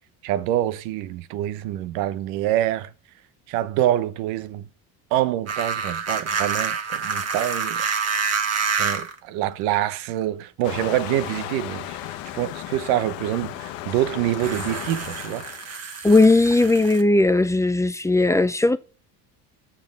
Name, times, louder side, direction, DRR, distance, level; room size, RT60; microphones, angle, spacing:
voice 1, 0.2-2.9 3.5-4.7 5.1-7.8 8.7-15.4, right 13 dB, 75° right, 1.0 m, -26 dB
sound 1, 5.5-9.2 10.2-10.3 14.3-17.0, right 5 dB, 30° right, 1.6 m, -27 dB
Waves surf, 10.6-15.7, left 13 dB, 70° left, 1.1 m, -35 dB
voice 2, 16.0-18.8, left 2 dB, 5° left, 0.5 m, -17 dB
7.1 x 6.0 x 6.4 m
supercardioid pair, 85°, 46 cm